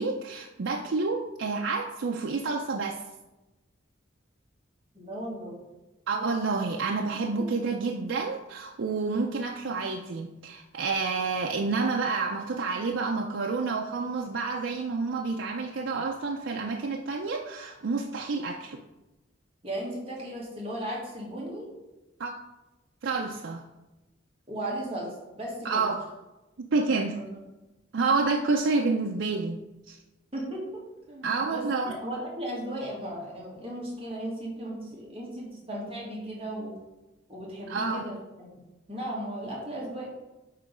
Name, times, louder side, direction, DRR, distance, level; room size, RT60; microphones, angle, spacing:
voice 1, 0.0-3.0 6.1-18.8 22.2-22.3 23.0-23.6 25.6-26.0 26.6-27.2 27.9-29.6 29.9-30.0 31.2-32.0 37.7-38.0, right 4 dB, 70° right, 2 dB, 0.5 m, -29 dB
voice 2, 4.9-5.5 7.2-7.5 19.6-21.7 24.5-25.9 27.1-27.4 30.3-36.7 37.3-38.2 38.9-40.1, right 1 dB, 30° right, -4 dB, 1.7 m, -36 dB
8.1 x 3.1 x 5.3 m, 1.0 s
head